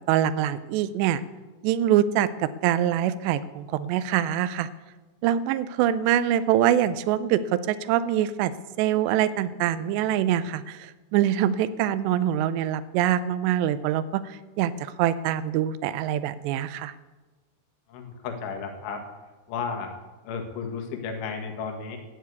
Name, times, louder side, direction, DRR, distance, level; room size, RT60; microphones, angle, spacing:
voice 1, 0.1-1.2 1.6-4.7 5.2-8.5 8.8-16.9, right 11 dB, 80° right, 15 dB, 2.7 m, -24 dB
voice 2, 17.9-19.0 19.5-19.9 20.2-22.0, left 5 dB, 90° left, 3 dB, 4.1 m, -33 dB
13.5 x 9.6 x 8.2 m, 1.2 s
omnidirectional pair, 5.2 m